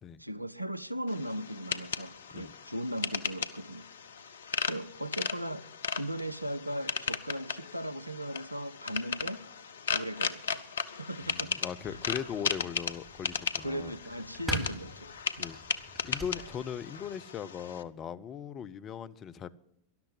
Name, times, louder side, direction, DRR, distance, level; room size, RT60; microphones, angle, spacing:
voice 1, 0.2-3.9 4.7-5.7 6.0-9.4 9.9-10.7 10.9-11.6 11.9-12.0 13.6-15.1 15.4-15.5, right 1 dB, 90° right, 0.6 m, -38 dB
sound 1, 1.1-17.8, left 6 dB, 65° left, 0.7 m, -36 dB
voice 2, 11.2-13.9 15.4-15.6 16.0-19.5, left 8 dB, 30° left, 0.7 m, -39 dB
sound 2, 11.8-17.1, right 1 dB, 10° right, 3.6 m, -44 dB
13.0 x 11.5 x 7.8 m
figure-of-eight pair, 90°, 0 cm